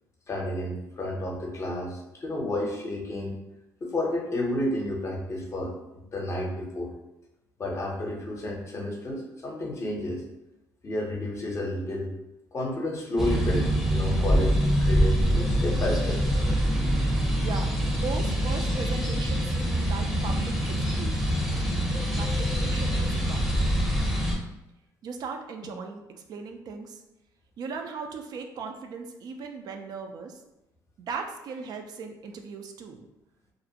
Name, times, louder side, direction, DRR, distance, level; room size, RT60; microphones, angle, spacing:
voice 1, 0.3-3.4 3.8-5.8 6.1-6.9 7.6-10.2 10.8-12.1 12.5-16.2, left 1 dB, 40° left, 0 dB, 0.6 m, -31 dB
sound 1, 13.2-24.3, equal, 5° right, 0.6 m, -25 dB
voice 2, 17.4-21.4 22.1-23.6 25.0-26.0 26.3-27.0 27.6-30.4 31.1-33.1, right 5 dB, 60° right, 4 dB, 0.3 m, -38 dB
2.4 x 2.1 x 2.7 m, 0.92 s
supercardioid pair, 85°, 8 cm